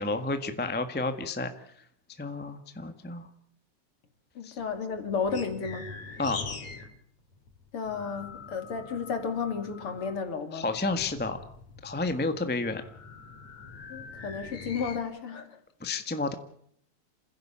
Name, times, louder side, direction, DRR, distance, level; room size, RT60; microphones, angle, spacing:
voice 1, 0.0-1.8 2.2-3.3 4.4-4.6 6.2-6.4 10.5-11.4 11.8-12.8 15.8-16.3, left 3 dB, 10° left, 8 dB, 0.7 m, -31 dB
voice 2, 4.3-5.9 7.7-10.7 13.9-15.5, left 5 dB, 50° left, 7 dB, 3.4 m, -33 dB
sound 1, 4.6-6.9 7.2-10.3 10.8-15.0, left 4 dB, 70° left, 4.1 m, -43 dB
28.0 x 16.0 x 8.7 m, 0.68 s
omnidirectional pair, 3.3 m